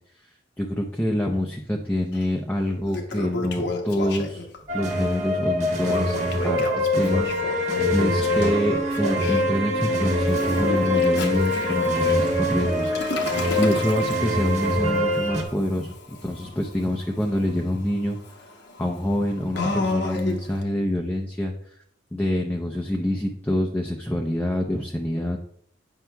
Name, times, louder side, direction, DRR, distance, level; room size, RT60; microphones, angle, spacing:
voice 1, 0.6-4.5 4.7-6.1 6.4-18.5 18.8-21.5 22.1-25.4, left 1 dB, 10° left, 1 dB, 0.5 m, -26 dB
Toilet flush, 2.1-2.2 2.7-4.6 5.8-9.4 10.3-20.6, left 2 dB, 60° left, 0.9 m, -33 dB
sound 1, 4.7-15.4, left 1 dB, 40° right, 1.4 m, -24 dB
9.2 x 5.5 x 2.3 m, 0.68 s
head